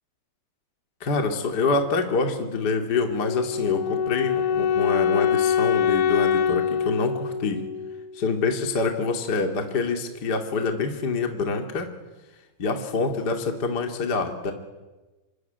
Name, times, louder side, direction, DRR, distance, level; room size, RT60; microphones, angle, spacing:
voice 1, 1.0-7.6 8.1-11.9 12.6-14.5, left 4 dB, 35° left, 4 dB, 1.5 m, -26 dB
Wind instrument woodwind instrument, 3.2-8.3, left 7 dB, 70° left, 3.1 m, -24 dB
27.5 x 23.0 x 9.3 m, 1.2 s
omnidirectional pair, 6.0 m